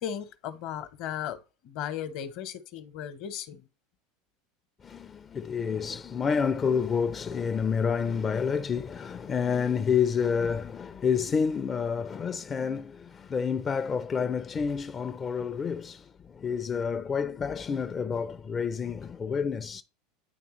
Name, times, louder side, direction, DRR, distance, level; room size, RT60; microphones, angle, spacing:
voice 1, 0.0-3.7, left 9 dB, 60° left, 0.9 m, -36 dB
voice 2, 4.8-19.8, left 6 dB, 30° left, 0.4 m, -29 dB
9.6 x 3.4 x 3.1 m
hypercardioid pair, 95°, 0 cm